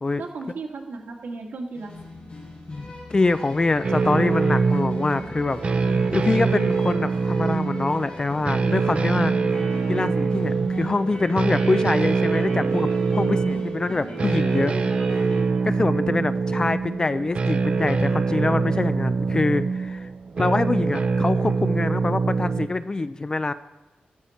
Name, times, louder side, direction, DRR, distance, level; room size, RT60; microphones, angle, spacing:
voice 1, 0.2-2.3, right 3 dB, 90° right, 0 dB, 2.2 m, -36 dB
sound 1, 1.7-15.4, equal, 40° left, 5.6 m, -38 dB
voice 2, 2.7-5.6 5.9-9.3 9.9-14.8 15.6-20.1 20.4-23.5, left 3 dB, 25° left, 13 dB, 0.4 m, -25 dB
sound 2, 3.8-22.7, right 4 dB, 40° right, 0.5 m, -24 dB
13.5 x 12.0 x 4.4 m, 1.0 s
wide cardioid pair, 155°, 3 cm